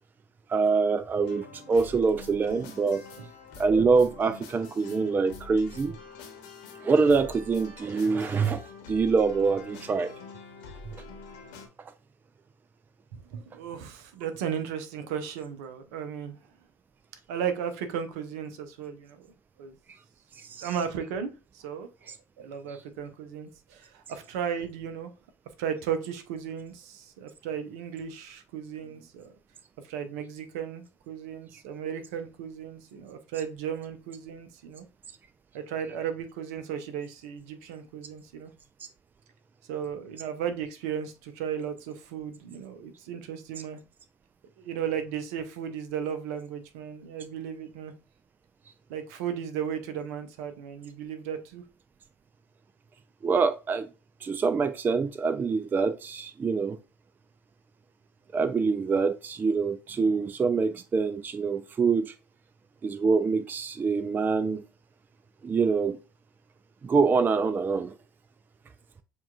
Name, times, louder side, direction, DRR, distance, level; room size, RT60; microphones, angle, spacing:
voice 1, 0.5-3.0 3.6-6.0 6.8-8.6 8.9-10.1 20.4-20.7 53.2-53.9 54.2-56.8 58.3-62.1 62.8-64.6 65.4-66.0 66.8-67.9, right 4 dB, 20° right, 0.3 m, -25 dB
sound 1, 1.2-11.7, left 3 dB, 60° left, 1.0 m, -46 dB
voice 2, 13.1-16.4 17.3-19.3 19.6-19.7 20.6-21.9 22.4-25.1 25.6-29.3 29.8-34.8 35.5-38.5 39.7-43.8 44.6-47.9 48.9-51.6, right 8 dB, 65° right, 0.6 m, -35 dB
7.0 x 2.4 x 2.3 m
figure-of-eight pair, 60°, 9 cm